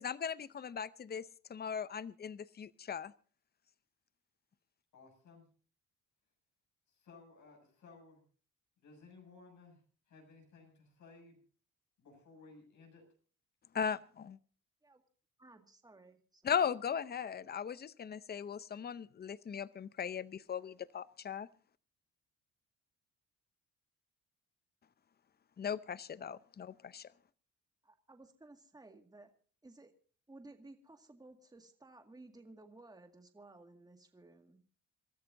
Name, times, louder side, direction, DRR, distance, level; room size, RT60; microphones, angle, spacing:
voice 1, 0.0-3.1 13.7-14.4 16.4-21.5 25.6-27.1, left 7 dB, 35° left, 17 dB, 0.7 m, -38 dB
voice 2, 4.9-5.5 6.9-8.2 8.8-9.8 10.1-11.4 12.0-13.0, left 4 dB, 70° left, 2 dB, 7.3 m, -58 dB
voice 3, 15.4-16.5 27.8-29.3 29.6-29.9 30.3-34.6, right 2 dB, 15° right, 5 dB, 2.0 m, -57 dB
27.0 x 13.5 x 2.7 m, 0.42 s
cardioid pair, 90°, 30 cm